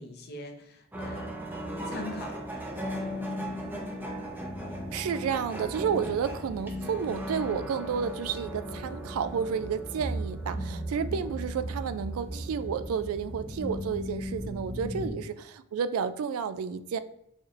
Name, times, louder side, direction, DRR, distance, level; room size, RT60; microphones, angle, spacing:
voice 1, 0.0-1.4 1.8-2.4 5.9-6.0 10.5-10.8 14.8-15.1, left 1 dB, 50° left, 4 dB, 0.6 m, -41 dB
sound 1, 0.9-15.1, equal, 10° right, 0.6 m, -36 dB
voice 2, 4.9-17.0, right 7 dB, 80° right, 13 dB, 0.3 m, -31 dB
4.1 x 3.1 x 2.5 m, 0.79 s
head